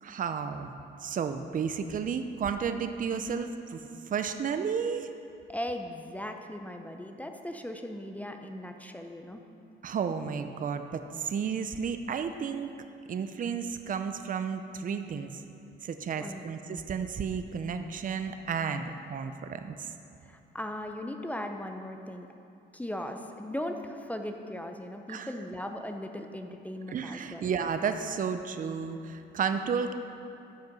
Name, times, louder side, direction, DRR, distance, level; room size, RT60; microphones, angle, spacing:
voice 1, 0.0-0.7 1.0-5.1 9.8-12.7 13.1-15.4 15.8-19.9 25.1-25.3 26.9-29.9, right 6 dB, 40° right, 8 dB, 0.6 m, -32 dB
voice 2, 5.5-9.4 16.2-16.5 20.2-22.3 22.7-27.5, left 1 dB, 5° left, 4 dB, 0.7 m, -38 dB
13.5 x 5.2 x 5.3 m, 2.6 s
cardioid pair, 90°, 20 cm